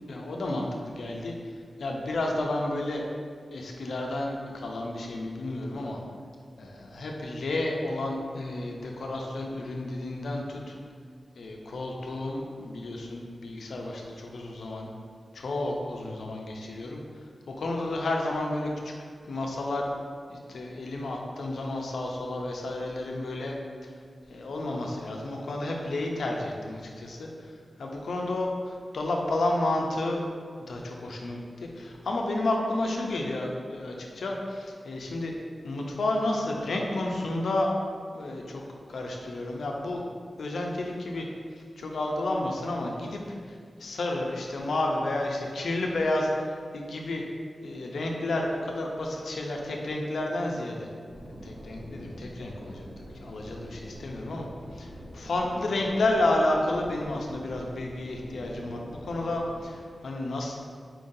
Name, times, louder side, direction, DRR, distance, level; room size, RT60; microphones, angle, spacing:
voice 1, 0.1-1.3 1.8-3.0 3.5-6.0 6.6-10.7 11.3-14.9 15.3-17.0 17.5-18.9 19.3-19.9 20.3-23.5 23.8-23.9 24.3-27.5 27.8-30.3 30.6-35.3 35.6-37.7 38.1-38.6 38.9-40.0 40.4-41.3 41.8-43.2 43.5-47.2 47.6-50.9 51.4-52.9 53.1-54.5 54.7-60.6, left 2 dB, 85° left, 0 dB, 0.5 m, -31 dB
sound 1, 51.1-59.7, equal, 55° right, 0.9 m, -45 dB
4.5 x 2.6 x 3.8 m, 2.1 s
wide cardioid pair, 125°, 0 cm